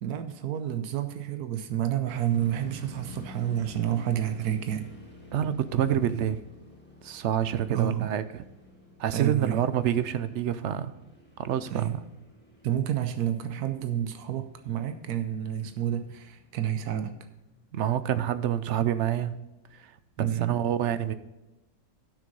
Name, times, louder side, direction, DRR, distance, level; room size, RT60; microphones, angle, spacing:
voice 1, 0.0-4.9 7.7-8.1 9.1-9.7 11.7-12.0 12.6-17.1 20.2-20.6, right 10 dB, 90° right, 9 dB, 1.2 m, -29 dB
sound 1, 2.1-19.1 19.7-19.8 20.3-20.6, equal, 5° left, 1.9 m, -50 dB
voice 2, 5.3-6.4 7.0-8.4 9.0-10.9 11.4-12.0 17.7-19.3 19.8-19.9 20.2-21.1, right 10 dB, 65° right, 13 dB, 0.7 m, -27 dB
10.5 x 6.4 x 5.3 m, 1.0 s
omnidirectional pair, 1.6 m